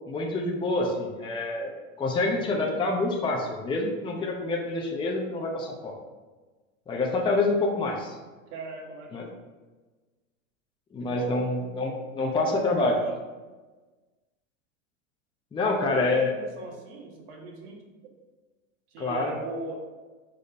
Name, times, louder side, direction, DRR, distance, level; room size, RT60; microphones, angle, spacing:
voice 1, 0.1-1.7 2.0-5.9 6.9-8.2 9.1-9.3 10.9-13.0 15.5-16.3 19.0-19.3, left 2 dB, 10° left, -1 dB, 0.7 m, -27 dB
voice 2, 8.5-9.3 11.1-11.3 12.7-13.2 15.8-18.1 18.9-19.8, right 2 dB, 55° right, 0 dB, 1.7 m, -40 dB
5.1 x 4.3 x 5.0 m, 1.3 s
supercardioid pair, 130°, 41 cm